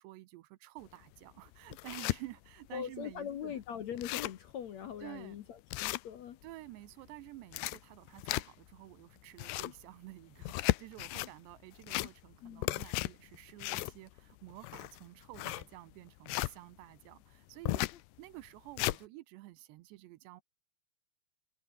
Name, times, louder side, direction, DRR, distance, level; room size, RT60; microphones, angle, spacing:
voice 1, 0.0-3.6 5.0-5.5 6.4-20.4, right 18 dB, 85° right, 3.1 m, -51 dB
sound 1, 0.9-1.0 1.5-2.2 2.7-2.8 3.1-3.2 3.6-3.7 3.9-4.5 4.9-5.0 5.7-6.5 7.3-8.8 9.2-9.8 10.4-11.3 11.7-12.4 12.6-16.5 17.7-18.0 18.5-19.0, left 20 dB, 85° left, 2.8 m, -35 dB
voice 2, 2.7-6.4 12.4-12.7 17.9-18.0, left 9 dB, 65° left, 1.8 m, -41 dB
omnidirectional pair, 4.8 m